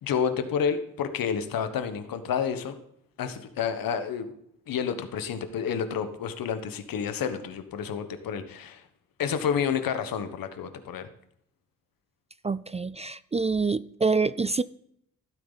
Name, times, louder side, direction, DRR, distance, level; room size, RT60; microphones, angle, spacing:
voice 1, 0.0-2.8 3.2-4.3 4.7-8.8 9.2-11.1, left 7 dB, 80° left, 9 dB, 1.4 m, -29 dB
voice 2, 12.4-14.6, right 4 dB, 20° right, 17 dB, 0.4 m, -26 dB
13.5 x 12.0 x 4.1 m, 0.70 s
cardioid pair, 75°, 34 cm